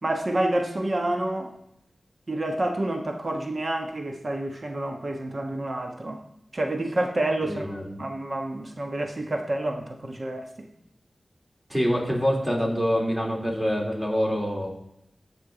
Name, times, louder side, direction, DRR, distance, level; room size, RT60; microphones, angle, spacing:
voice 1, 0.0-1.5 2.3-6.2 6.5-10.7, right 1 dB, 55° right, 4 dB, 1.1 m, -28 dB
voice 2, 7.4-7.9 11.7-14.7, equal, 15° right, -1 dB, 3.1 m, -25 dB
15.5 x 5.6 x 3.9 m, 0.79 s
wide cardioid pair, 55°, 0 cm